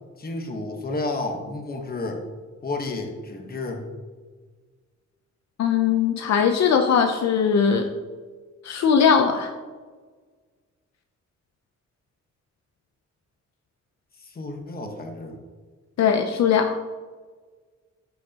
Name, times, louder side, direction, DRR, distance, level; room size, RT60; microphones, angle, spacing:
voice 1, 0.2-2.2 2.6-3.9 14.2-15.4, left 2 dB, 30° left, 3 dB, 1.1 m, -31 dB
voice 2, 5.6-7.9 8.6-9.5 16.0-16.8, left 7 dB, 65° left, 5 dB, 0.6 m, -20 dB
13.0 x 6.3 x 2.9 m, 1.4 s
wide cardioid pair, 165°, 29 cm